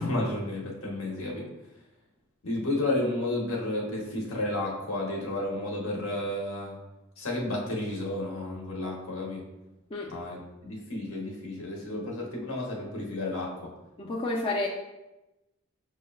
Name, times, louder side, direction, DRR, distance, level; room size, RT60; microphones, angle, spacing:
voice 1, 0.0-1.5 2.4-6.8 7.2-9.4 10.1-13.5, left 1 dB, 70° left, -2 dB, 0.9 m, -32 dB
voice 2, 14.0-14.7, left 2 dB, 25° left, -2 dB, 0.4 m, -30 dB
6.4 x 2.2 x 2.3 m, 0.99 s
head